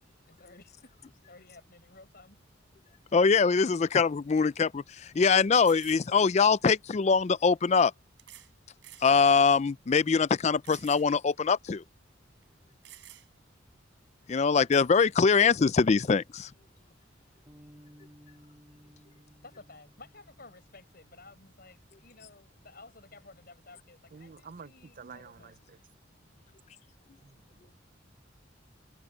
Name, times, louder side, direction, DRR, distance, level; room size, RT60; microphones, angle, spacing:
voice 1, 0.3-2.6 19.4-25.5, left 3 dB, 50° left, 6.8 m, -54 dB
voice 2, 3.1-7.9 9.0-11.8 14.3-16.5, left 5 dB, 35° left, 0.4 m, -23 dB
sound 1, 4.4-4.5 5.5-6.1 7.2-7.3 8.2-8.5 8.8-9.1 9.6-9.7 10.6-11.1 11.4-11.5 12.4-12.5 12.8-13.5 14.7-14.9, right 13 dB, 65° right, 6.9 m, -51 dB
Bass guitar, 17.5-23.7, equal, 15° right, 3.3 m, -59 dB
voice 3, 24.1-25.8 27.2-27.4, right 5 dB, 45° right, 0.5 m, -49 dB
head